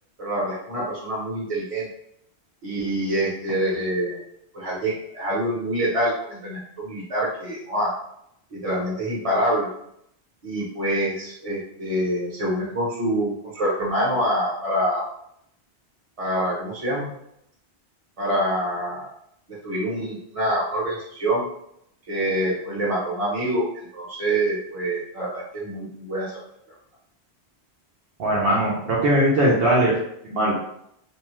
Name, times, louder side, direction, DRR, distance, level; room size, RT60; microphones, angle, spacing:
voice 1, 0.2-1.9 2.6-4.2 4.5-7.9 8.5-9.7 10.4-15.0 16.2-17.1 18.2-19.1 19.6-21.5 22.1-23.6 23.9-26.3, right 1 dB, 35° right, -5 dB, 0.9 m, -26 dB
voice 2, 28.2-29.9 30.2-30.5, right 1 dB, 65° right, -5 dB, 0.8 m, -20 dB
2.7 x 2.2 x 3.0 m, 0.75 s
omnidirectional pair, 1.1 m